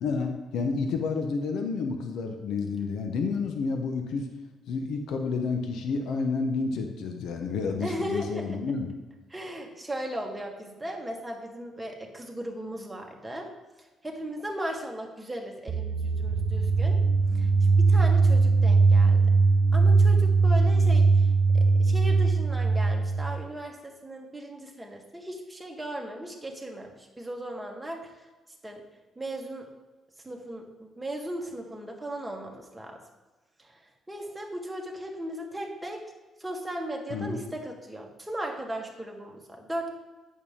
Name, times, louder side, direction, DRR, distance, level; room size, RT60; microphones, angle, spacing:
voice 1, 0.0-4.3 4.7-8.9 37.1-37.4, left 4 dB, 80° left, 4 dB, 0.9 m, -30 dB
voice 2, 7.8-8.6 9.3-13.5 13.8-17.0 17.3-19.4 19.7-28.3 28.6-28.8 29.1-29.7 30.2-33.0 33.6-36.0 36.4-40.0, right 1 dB, 10° right, 0 dB, 1.5 m, -37 dB
sound 1, 15.7-23.4, right 4 dB, 60° right, 0.7 m, -21 dB
8.6 x 6.5 x 3.6 m, 1.2 s
cardioid pair, 90°, 0 cm